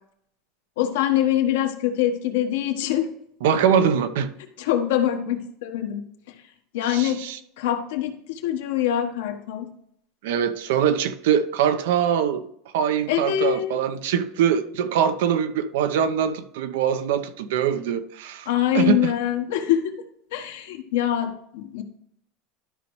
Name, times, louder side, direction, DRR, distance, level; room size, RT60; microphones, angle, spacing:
voice 1, 0.8-3.1 4.6-6.3 6.7-7.2 7.6-9.7 13.1-13.8 18.4-19.9 20.3-21.8, left 11 dB, 85° left, 4 dB, 1.3 m, -24 dB
voice 2, 3.4-4.3 6.9-7.4 10.2-12.4 12.7-18.5 18.7-19.1, right 8 dB, 80° right, 10 dB, 0.8 m, -23 dB
12.5 x 5.2 x 3.1 m, 0.70 s
supercardioid pair, 145°, 0 cm